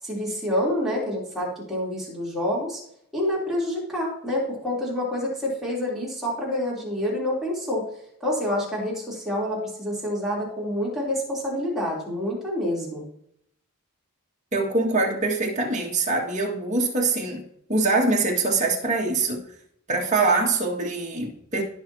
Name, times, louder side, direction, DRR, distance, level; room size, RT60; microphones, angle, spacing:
voice 1, 0.0-2.8 3.1-7.8 8.2-13.0, left 1 dB, ahead, -7 dB, 3.4 m, -27 dB
voice 2, 14.5-17.4 17.7-19.4 19.9-21.6, right 3 dB, 35° right, -2 dB, 2.0 m, -23 dB
16.0 x 6.0 x 2.9 m, 0.71 s
head